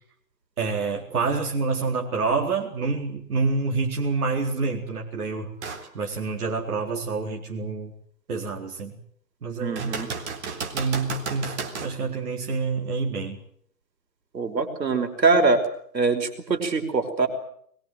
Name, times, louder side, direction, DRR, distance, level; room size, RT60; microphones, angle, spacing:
voice 1, 0.6-5.5 5.9-7.9 8.3-9.0 9.4-10.0 10.7-13.4, right 4 dB, 60° right, 1 dB, 4.2 m, -27 dB
sound 1, 5.6-5.9 6.5-6.6 9.8-12.0 15.6-15.7, right 5 dB, 40° right, 3.9 m, -33 dB
voice 2, 9.6-10.1 14.3-15.6 15.9-17.3, right 3 dB, 85° right, 6 dB, 5.6 m, -23 dB
22.5 x 22.5 x 7.9 m, 0.65 s
hypercardioid pair, 160°, 49 cm